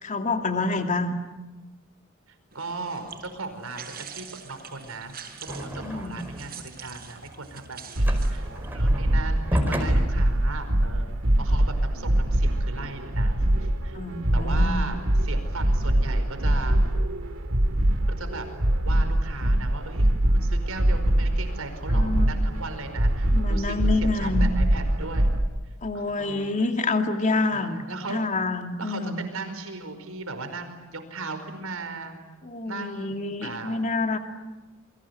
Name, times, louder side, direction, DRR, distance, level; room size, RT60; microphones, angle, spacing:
voice 1, 0.0-1.1 5.8-6.2 13.9-14.9 21.9-22.3 23.3-24.6 25.8-29.2 32.4-34.2, left 3 dB, 35° left, 5 dB, 2.4 m, -27 dB
sound 1, 2.5-8.7, right 7 dB, 45° right, 5.7 m, -44 dB
voice 2, 2.5-5.1 5.4-8.5 8.7-13.4 13.8-14.0 14.3-16.8 18.2-18.5 18.8-25.3 25.7-26.5 27.5-28.3 28.8-32.2 32.6-33.2 33.4-33.9, right 3 dB, 85° right, 8 dB, 5.0 m, -37 dB
sound 2, 5.5-6.6 7.0-11.5, equal, 10° right, 5.0 m, -31 dB
sound 3, 8.0-25.4, right 1 dB, 70° right, 2.3 m, -23 dB
29.0 x 24.0 x 8.3 m, 1.2 s
head